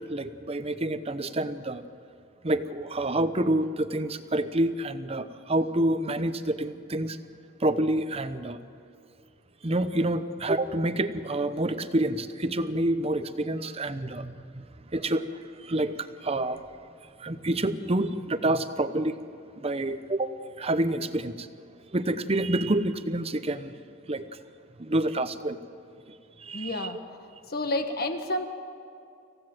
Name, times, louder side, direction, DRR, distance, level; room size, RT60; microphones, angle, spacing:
voice 1, 0.0-1.8 2.4-7.2 7.6-8.6 9.6-14.7 14.9-16.6 17.2-19.2 19.6-20.3 20.6-21.5 21.9-23.8 24.1-24.3 24.8-25.6 26.1-26.9, right 1 dB, 30° right, 11 dB, 0.8 m, -28 dB
voice 2, 26.5-27.0 27.5-28.5, left 1 dB, 50° left, 6 dB, 1.6 m, -29 dB
27.0 x 16.0 x 7.8 m, 2.5 s
head